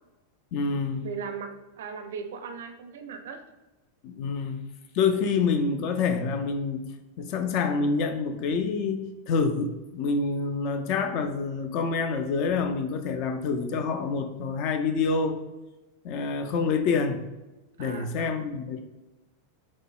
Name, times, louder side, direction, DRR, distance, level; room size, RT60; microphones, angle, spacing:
voice 1, 0.5-1.1 4.0-4.6 4.9-6.9 7.2-15.4 16.0-17.2 17.8-18.8, left 4 dB, 45° left, 7 dB, 0.4 m, -27 dB
voice 2, 1.0-3.4 17.8-18.3, right 6 dB, 60° right, 7 dB, 0.4 m, -38 dB
6.1 x 2.1 x 2.3 m, 1.1 s
figure-of-eight pair, 90°, 0 cm